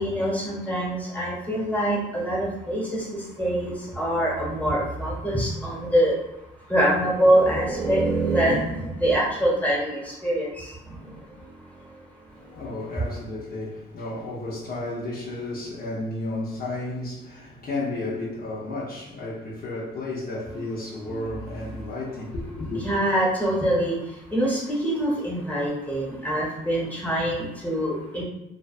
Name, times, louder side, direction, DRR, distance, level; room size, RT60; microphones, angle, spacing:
voice 1, 0.0-3.0 3.4-6.1 6.7-10.6 22.7-23.9 24.3-28.2, right 1 dB, 10° left, 1.0 m, -24 dB
voice 2, 12.3-22.9, left 2 dB, 50° left, 0.6 m, -32 dB
2.5 x 2.3 x 2.4 m
cardioid pair, 90°, 20 cm